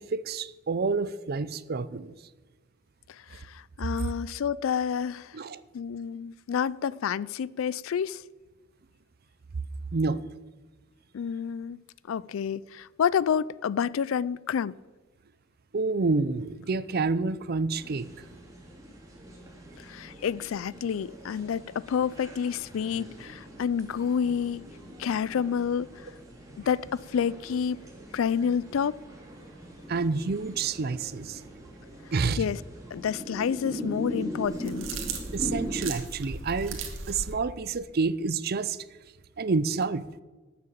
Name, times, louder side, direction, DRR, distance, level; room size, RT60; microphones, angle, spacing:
voice 1, 0.0-2.1 5.3-5.6 9.9-10.2 15.7-18.1 29.9-31.4 32.1-32.4 35.3-36.8 37.1-38.8 39.4-40.1, right 4 dB, 50° right, 0.5 m, -28 dB
voice 2, 3.1-5.4 5.7-8.2 11.1-11.8 12.1-14.8 19.8-24.6 25.0-26.1 26.6-27.8 28.1-29.0 32.4-32.6 32.9-34.9, left 7 dB, 85° left, 0.4 m, -29 dB
sound 1, 17.7-35.9, equal, 15° right, 2.9 m, -41 dB
sound 2, 34.4-37.3, right 4 dB, 80° right, 1.8 m, -37 dB
12.5 x 6.8 x 8.5 m
head